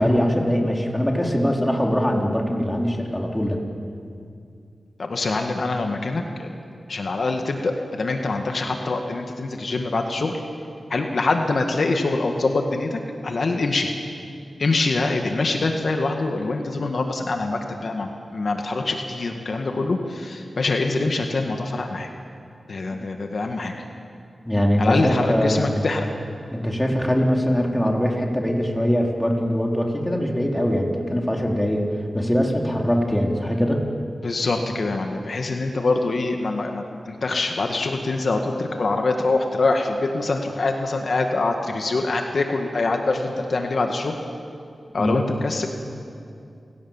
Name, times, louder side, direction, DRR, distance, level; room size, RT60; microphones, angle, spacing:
voice 1, 0.0-3.6 24.5-25.8 26.5-33.8 45.0-45.2, equal, 10° left, 0 dB, 3.7 m, -22 dB
voice 2, 5.0-6.5 6.9-10.4 10.9-13.9 14.6-22.1 22.7-23.7 24.8-26.1 34.2-44.2 44.9-45.7, left 3 dB, 70° left, 3 dB, 2.0 m, -24 dB
29.0 x 17.5 x 7.4 m, 2.5 s
cardioid pair, 55°, 0 cm